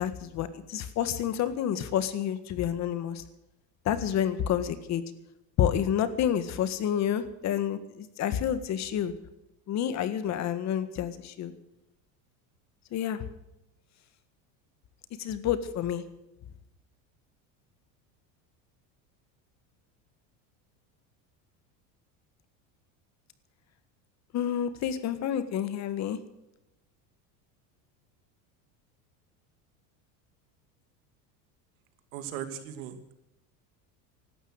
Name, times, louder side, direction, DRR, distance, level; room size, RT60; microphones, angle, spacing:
voice 1, 0.0-3.2 3.9-5.0 5.6-9.1 9.7-11.5 12.9-13.2 15.2-16.0 24.3-26.2, left 9 dB, 40° left, 12 dB, 1.8 m, -29 dB
voice 2, 32.1-33.1, right 9 dB, 85° right, 8 dB, 2.8 m, -38 dB
16.5 x 12.5 x 6.6 m, 0.90 s
supercardioid pair, 135°, 41 cm